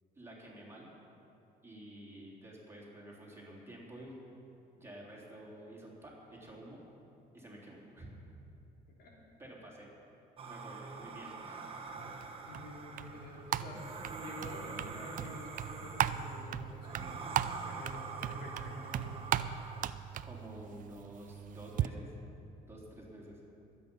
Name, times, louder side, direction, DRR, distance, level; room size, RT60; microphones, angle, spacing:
voice 1, 0.1-0.9 1.6-4.1 4.7-6.8 7.3-8.1 9.4-9.9 10.5-11.6 20.2-22.1 22.6-23.4, right 1 dB, 15° right, -4 dB, 3.4 m, -50 dB
sound 1, 10.4-19.9, right 4 dB, 30° right, 1.4 m, -46 dB
sound 2, 12.2-21.9, right 11 dB, 55° right, 0.5 m, -38 dB
voice 2, 12.4-13.8 14.1-17.2 17.5-19.2, left 2 dB, 65° left, -3 dB, 3.5 m, -48 dB
22.0 x 8.6 x 5.4 m, 2.8 s
cardioid pair, 110°, 17 cm